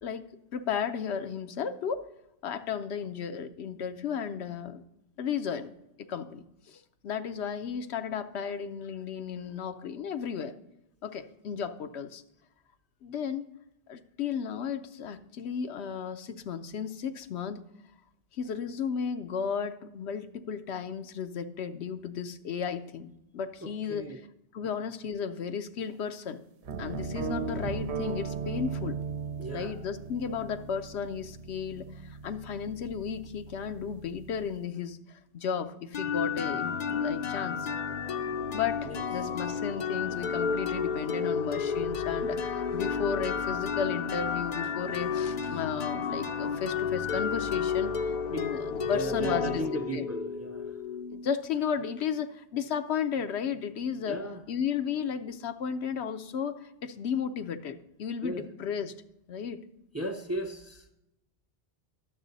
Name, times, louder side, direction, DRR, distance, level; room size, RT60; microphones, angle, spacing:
voice 1, 0.0-2.1 2.4-4.8 5.2-5.7 6.0-10.6 11.0-12.2 13.0-13.4 13.9-17.6 18.4-24.2 24.5-26.4 26.8-29.0 29.5-37.7 38.5-49.6 49.9-50.1 51.1-54.2 54.5-58.9 59.3-59.6, left 7 dB, 80° left, 9 dB, 0.9 m, -34 dB
voice 2, 23.6-24.2 29.4-29.7 38.8-39.0 48.3-48.4 48.8-50.6 54.1-54.4 58.2-58.4 59.9-60.9, right 1 dB, 20° right, 7 dB, 0.5 m, -36 dB
sound 1, 26.7-34.6, right 5 dB, 75° right, 0.9 m, -38 dB
sound 2, 35.9-51.6, left 6 dB, 50° left, 0.5 m, -32 dB
11.0 x 7.2 x 3.9 m, 0.87 s
omnidirectional pair, 1.1 m